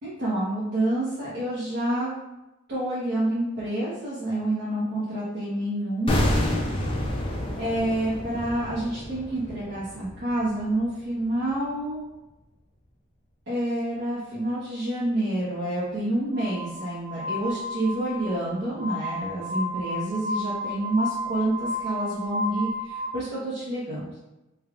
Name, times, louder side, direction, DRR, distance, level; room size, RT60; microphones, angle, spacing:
voice 1, 0.0-2.1 2.7-6.3 7.6-12.0 13.5-24.3, right 1 dB, 50° right, -9 dB, 0.8 m, -28 dB
sound 1, 6.1-11.1 11.3-11.5, left 1 dB, 25° left, 0.4 m, -29 dB
Glass, 16.3-23.1, left 1 dB, 45° left, 1.4 m, -32 dB
3.4 x 2.3 x 3.5 m, 1.0 s
head